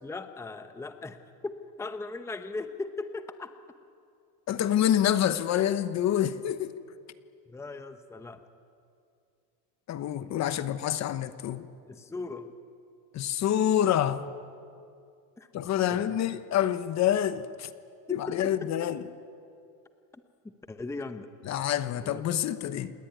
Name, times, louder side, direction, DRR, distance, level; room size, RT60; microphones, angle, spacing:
voice 1, 0.0-1.2 1.4-1.5 1.8-3.5 7.5-8.4 11.9-12.5 15.4-15.5 18.1-18.5 20.1-21.3 22.0-22.2, left 3 dB, 5° left, 9 dB, 0.9 m, -38 dB
voice 2, 4.5-6.8 9.9-11.7 13.1-14.2 15.5-17.7 18.1-19.0 21.5-22.9, left 11 dB, 35° left, 12 dB, 1.1 m, -27 dB
28.5 x 20.0 x 9.5 m, 2.4 s
supercardioid pair, 140°, 49 cm